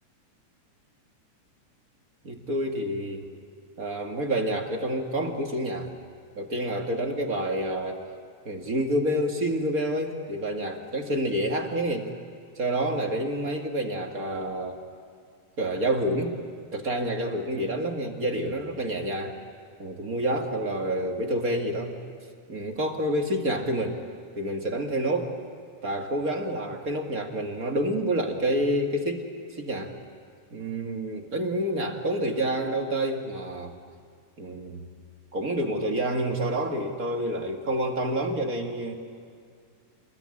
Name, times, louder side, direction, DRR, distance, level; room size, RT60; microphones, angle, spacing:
voice 1, 2.2-3.3 3.8-5.9 6.3-8.0 8.5-12.1 12.6-14.8 15.6-16.4 16.7-19.4 19.8-22.0 22.5-24.0 24.4-25.3 25.8-29.9 30.5-33.7 34.4-34.8 35.3-39.0, right 1 dB, 30° right, 2 dB, 2.1 m, -28 dB
28.5 x 21.0 x 9.8 m, 2.2 s
omnidirectional pair, 3.4 m